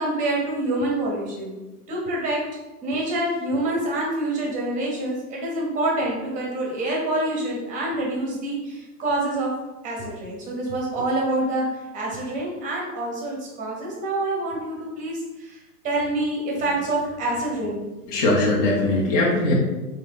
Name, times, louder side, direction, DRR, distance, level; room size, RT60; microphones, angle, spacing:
voice 1, 0.0-1.6 1.9-2.4 2.8-9.5 9.8-11.7 11.9-15.6 15.8-17.9, right 1 dB, 15° right, -2 dB, 0.7 m, -26 dB
voice 2, 18.1-19.5, left 2 dB, 25° left, -4 dB, 0.5 m, -20 dB
3.5 x 2.5 x 3.4 m, 1.1 s
hypercardioid pair, 130°, 46 cm